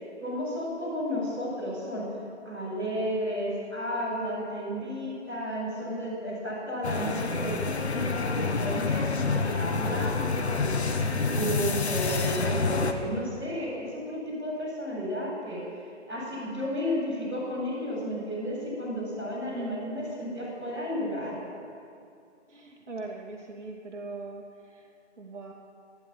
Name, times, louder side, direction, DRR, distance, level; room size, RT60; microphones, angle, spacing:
voice 1, 0.2-2.2 2.4-10.8 11.3-15.6 16.1-21.4, equal, 5° right, -14 dB, 4.9 m, -32 dB
sound 1, 6.8-12.9, left 4 dB, 65° left, 1.4 m, -28 dB
voice 2, 22.5-24.9 25.2-25.5, right 3 dB, 80° right, 0 dB, 2.7 m, -40 dB
14.5 x 10.5 x 8.8 m, 2.4 s
hypercardioid pair, 175°, 36 cm